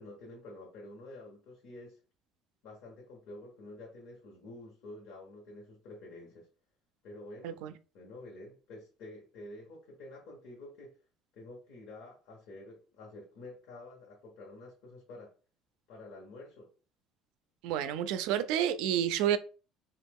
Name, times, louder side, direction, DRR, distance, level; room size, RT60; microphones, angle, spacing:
voice 1, 0.0-2.0 2.6-6.5 7.0-7.6 7.9-10.9 11.3-15.3 15.9-16.7, left 2 dB, 70° left, 1.0 m, -49 dB
voice 2, 17.6-19.4, right 10 dB, 80° right, 0.4 m, -29 dB
3.0 x 2.4 x 3.5 m
cardioid pair, 160°, 0 cm